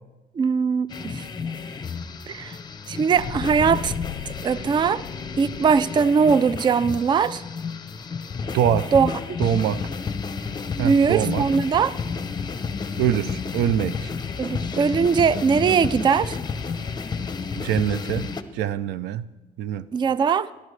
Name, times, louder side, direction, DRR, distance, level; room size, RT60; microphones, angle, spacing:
voice 1, 0.4-1.2 2.3-2.5 2.9-3.9 4.4-5.0 5.4-7.4 8.9-9.1 10.8-11.9 14.4-16.4 19.9-20.5, right 6 dB, 25° right, 0.3 m, -20 dB
sound 1, 0.9-18.4, left 5 dB, 25° left, 0.7 m, -31 dB
sound 2, 3.2-6.3, left 14 dB, 85° left, 0.4 m, -38 dB
voice 2, 8.5-8.9 9.4-9.9 10.8-11.5 13.0-14.1 17.6-18.3 18.5-19.2 19.6-19.9, right 10 dB, 90° right, 0.5 m, -24 dB
18.0 x 11.5 x 3.2 m
cardioid pair, 110°, 17 cm